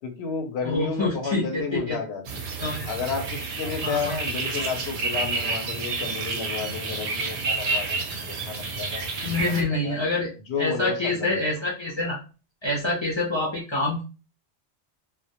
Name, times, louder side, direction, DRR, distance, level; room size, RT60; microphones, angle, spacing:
voice 1, 0.0-2.4 2.9-10.0 10.5-11.3, left 5 dB, 75° left, 4 dB, 0.8 m, -32 dB
voice 2, 0.6-2.0 2.6-2.9 3.8-4.1 9.2-10.3 10.6-12.2 12.6-14.0, left 2 dB, 35° left, -5 dB, 0.4 m, -26 dB
sound 1, 2.3-9.6, right 3 dB, 60° right, 0.6 m, -30 dB
2.1 x 2.1 x 2.7 m, 0.33 s
omnidirectional pair, 1.1 m